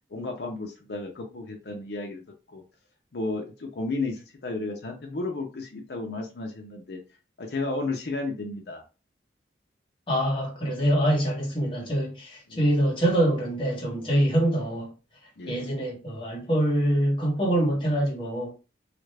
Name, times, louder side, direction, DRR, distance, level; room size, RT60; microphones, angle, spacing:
voice 1, 0.1-2.6 3.1-7.0 7.4-8.8 12.5-12.6 15.4-15.7, left 3 dB, 65° left, 0.6 m, -33 dB
voice 2, 10.1-14.9 15.5-18.5, right 1 dB, 30° left, 1.0 m, -25 dB
3.2 x 2.5 x 3.2 m
head